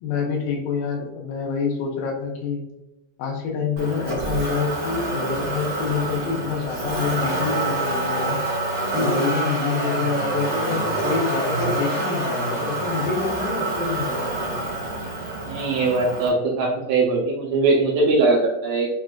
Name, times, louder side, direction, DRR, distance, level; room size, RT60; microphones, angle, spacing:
voice 1, 0.0-2.6 3.2-8.4 8.9-14.6, left 5 dB, 80° left, 0 dB, 2.3 m, -27 dB
Motor vehicle (road), 3.8-16.3, right 2 dB, 65° right, 0.9 m, -26 dB
voice 2, 15.4-18.9, right 3 dB, 80° right, -3 dB, 1.5 m, -21 dB
6.4 x 2.4 x 2.4 m, 0.95 s
omnidirectional pair, 4.2 m